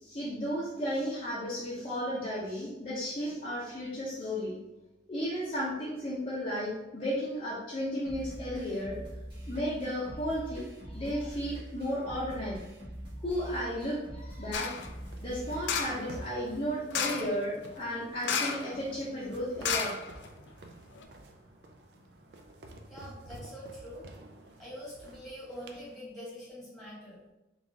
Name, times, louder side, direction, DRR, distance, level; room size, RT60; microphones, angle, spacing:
voice 1, 0.0-4.6 5.1-9.0 9.5-12.7 12.9-14.7 15.2-19.9, equal, 30° left, -7 dB, 0.6 m, -34 dB
sound 1, 8.0-16.0, equal, 25° right, 1.3 m, -44 dB
sound 2, 14.5-14.9 15.6-16.1 16.9-17.4 18.2-18.7 19.0-19.1 19.6-20.5 21.0-21.1, left 6 dB, 80° left, 0.4 m, -32 dB
sound 3, 14.8-26.0, right 2 dB, 65° right, 0.4 m, -51 dB
voice 2, 21.7-22.3 22.9-24.1 24.6-27.3, equal, ahead, -7 dB, 1.4 m, -45 dB
3.8 x 2.4 x 3.4 m, 1.0 s
head